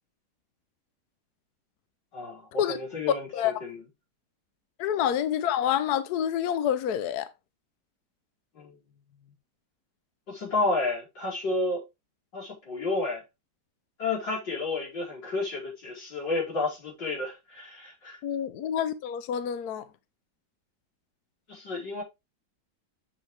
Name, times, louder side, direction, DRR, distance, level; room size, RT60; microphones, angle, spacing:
voice 1, 2.1-3.9 8.5-8.8 10.3-11.8 12.3-13.2 14.0-18.2 21.5-22.0, left 3 dB, 85° left, 5.9 m, -31 dB
voice 2, 4.8-7.3 18.2-19.9, left 9 dB, 70° left, 1.1 m, -27 dB
8.9 x 6.3 x 3.3 m
omnidirectional pair, 1.9 m